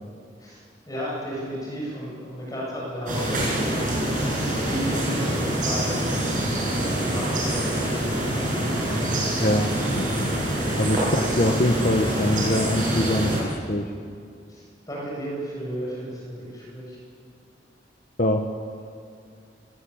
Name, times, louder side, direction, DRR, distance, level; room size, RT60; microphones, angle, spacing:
voice 1, 0.9-3.9 4.6-9.3 10.5-10.7 14.5-17.0, equal, 20° left, -5 dB, 7.9 m, -34 dB
sound 1, 3.1-13.4, right 1 dB, 45° right, 7.9 m, -25 dB
voice 2, 6.8-7.2 9.4-9.7 9.9-10.3 10.8-13.9 18.2-18.4, left 1 dB, 45° left, 3 dB, 1.2 m, -24 dB
25.0 x 20.0 x 8.7 m, 2.3 s
head